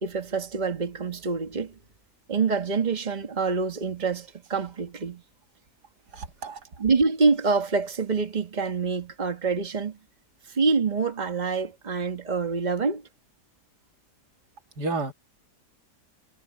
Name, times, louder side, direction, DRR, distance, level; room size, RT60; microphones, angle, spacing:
voice 1, 0.0-1.8 2.3-5.2 6.8-10.0 10.5-13.0, right 4 dB, 30° right, 1.8 m, -26 dB
voice 2, 6.1-6.6 14.8-15.1, right 3 dB, 90° right, 2.6 m, -31 dB
omnidirectional pair, 1.7 m